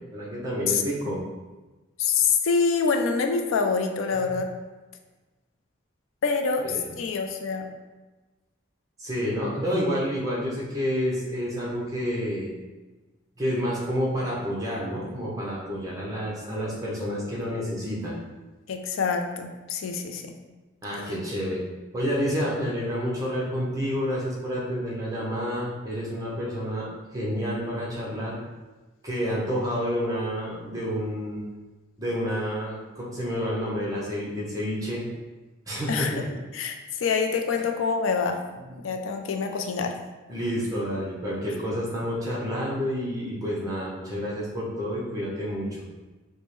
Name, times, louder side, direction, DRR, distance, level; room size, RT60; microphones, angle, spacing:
voice 1, 0.1-1.2 4.3-4.4 6.6-6.9 9.0-12.5 13.4-18.2 20.8-21.6 21.9-26.9 27.1-28.4 29.0-31.4 32.0-35.0 35.7-36.2 38.7-38.8 40.3-45.7, equal, 15° right, -5 dB, 0.8 m, -29 dB
voice 2, 0.7-1.1 2.0-4.5 6.2-7.7 18.7-20.3 35.9-36.3 36.5-38.4 38.8-40.0, left 5 dB, 80° left, 5 dB, 0.4 m, -26 dB
5.1 x 2.1 x 3.1 m, 1.2 s
head